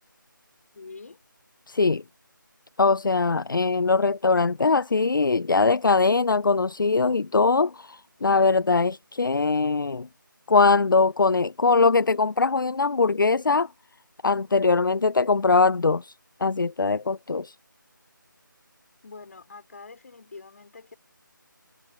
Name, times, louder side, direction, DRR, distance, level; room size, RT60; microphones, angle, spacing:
voice 1, 0.7-1.2 19.0-21.0, left 4 dB, 45° left, 4.9 m, -45 dB
voice 2, 1.7-2.0 2.8-10.1 10.5-13.7 14.2-16.1 16.4-17.5, left 4 dB, 70° left, 0.4 m, -21 dB
figure-of-eight pair, 160°, 11 cm